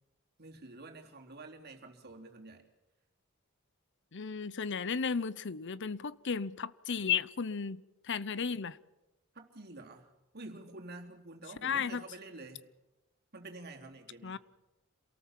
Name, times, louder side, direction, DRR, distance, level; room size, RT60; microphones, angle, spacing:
voice 1, 0.4-2.6 9.3-12.7 13.3-14.4, right 2 dB, 50° right, 3.6 m, -48 dB
voice 2, 4.1-8.8 11.6-12.0 14.2-14.4, left 6 dB, 60° left, 0.8 m, -34 dB
27.5 x 18.5 x 7.5 m
head